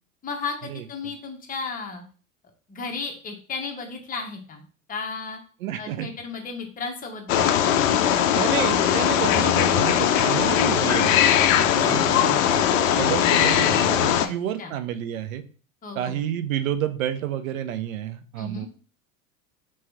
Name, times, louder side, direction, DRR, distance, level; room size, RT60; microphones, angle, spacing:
voice 1, 0.2-2.0 2.7-4.6 4.9-5.4 5.8-7.9 11.7-12.3 14.2-14.3 14.6-14.7 15.8-16.2 18.4-18.7, left 4 dB, 20° left, 2 dB, 0.9 m, -34 dB
voice 2, 5.6-6.1 8.3-15.4 16.0-18.7, right 11 dB, 70° right, 10 dB, 0.6 m, -30 dB
Wild animals, 7.3-14.3, left 10 dB, 65° left, 0.5 m, -20 dB
3.0 x 2.9 x 3.4 m, 0.40 s
hypercardioid pair, 80°, 42 cm